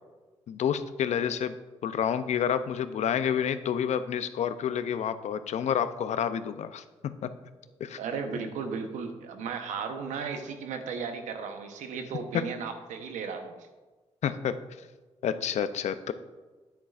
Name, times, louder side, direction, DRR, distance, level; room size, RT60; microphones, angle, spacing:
voice 1, 0.5-1.6 1.8-7.3 7.8-8.0 12.3-12.5 14.2-14.6 15.2-16.1, left 8 dB, 70° left, 12 dB, 0.5 m, -29 dB
voice 2, 8.0-13.6, right 5 dB, 90° right, 6 dB, 0.9 m, -35 dB
9.6 x 8.7 x 2.4 m, 1.2 s
cardioid pair, 70°, 12 cm